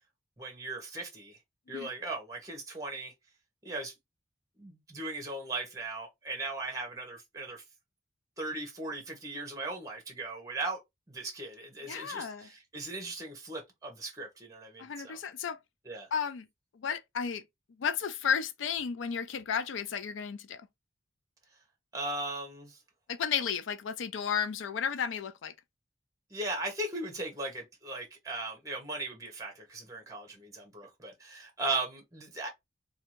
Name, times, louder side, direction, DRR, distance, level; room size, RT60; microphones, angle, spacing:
voice 1, 0.4-1.4 1.7-3.1 3.6-3.9 4.6-7.6 8.4-10.8 11.1-15.2 15.8-16.1 21.9-22.8 26.3-32.5, right 2 dB, 15° right, 0.8 m, -38 dB
voice 2, 11.9-12.5 14.8-15.6 16.1-16.5 16.7-17.4 17.8-20.7 23.1-25.5, left 7 dB, 80° left, 0.4 m, -33 dB
2.5 x 2.3 x 3.0 m
head